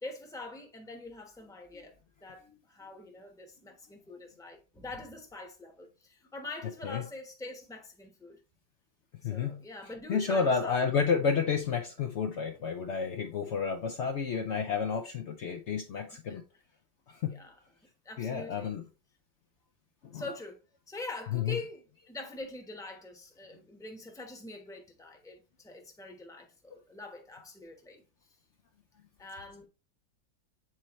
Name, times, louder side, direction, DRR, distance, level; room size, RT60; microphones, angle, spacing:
voice 1, 0.0-1.9 2.2-8.4 9.2-10.9 16.3-16.4 17.2-17.6 18.0-18.7 20.1-20.6 20.9-28.0 29.2-29.7, left 2 dB, 5° left, 0.7 m, -44 dB
voice 2, 6.6-7.1 9.2-16.4 17.1-17.4 18.2-18.8 20.0-20.4 21.3-21.6, left 6 dB, 90° left, 0.6 m, -31 dB
7.7 x 4.3 x 3.0 m
omnidirectional pair, 2.0 m